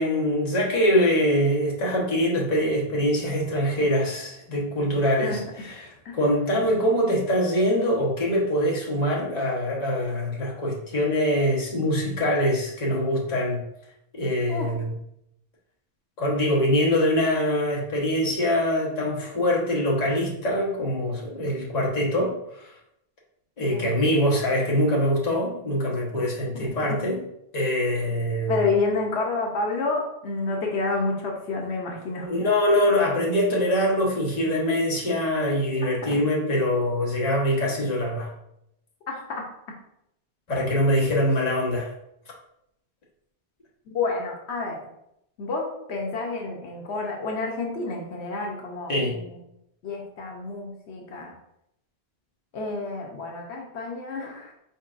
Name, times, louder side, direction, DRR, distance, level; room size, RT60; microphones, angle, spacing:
voice 1, 0.0-13.6 14.1-15.0 16.2-22.8 23.6-27.2 27.5-28.6 32.2-38.3 40.5-41.9 48.9-49.2, equal, 40° left, -3 dB, 1.1 m, -24 dB
voice 2, 26.5-27.0 28.5-32.3 39.1-39.5 41.1-41.2 43.9-44.8 45.4-49.4 49.8-51.3 52.5-54.5, left 3 dB, 80° left, 0 dB, 1.0 m, -29 dB
4.5 x 4.1 x 2.5 m, 0.79 s
omnidirectional pair, 1.1 m